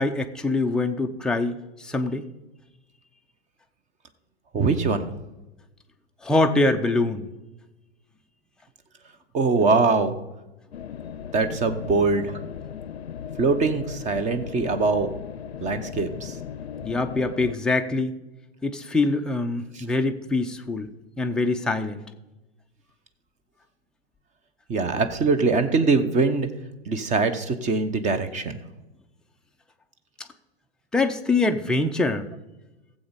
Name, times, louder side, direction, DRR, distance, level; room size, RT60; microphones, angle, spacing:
voice 1, 0.0-2.3 6.2-7.3 16.8-18.1 18.6-20.9 21.2-22.0 30.9-32.3, left 2 dB, ahead, 4 dB, 0.5 m, -24 dB
voice 2, 4.5-5.1 9.3-10.1 11.3-12.4 13.4-15.1 15.6-16.4 19.7-19.8 24.7-26.5 26.9-28.6, right 4 dB, 20° right, 10 dB, 1.0 m, -22 dB
sound 1, 10.7-17.6, left 8 dB, 70° left, 0.6 m, -37 dB
15.5 x 7.6 x 5.2 m, 1.0 s
figure-of-eight pair, 100°, 32 cm